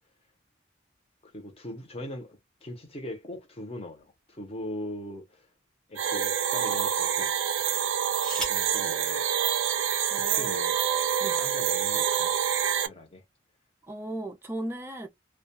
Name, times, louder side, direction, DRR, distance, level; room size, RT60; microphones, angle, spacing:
voice 1, 1.2-5.5 5.9-7.3 8.3-9.5 10.3-10.8 11.4-12.4 12.8-13.2, left 1 dB, 30° left, 0.7 m, -40 dB
sound 1, 4.0-5.2 5.9-6.1 7.7-8.8 9.9-10.0 10.3-10.7, equal, 5° left, 0.8 m, -40 dB
sound 2, 6.0-12.9, right 8 dB, 85° right, 0.5 m, -27 dB
voice 2, 10.1-10.6 11.2-11.4 13.8-15.1, right 1 dB, 10° right, 0.4 m, -36 dB
2.2 x 2.2 x 2.8 m
head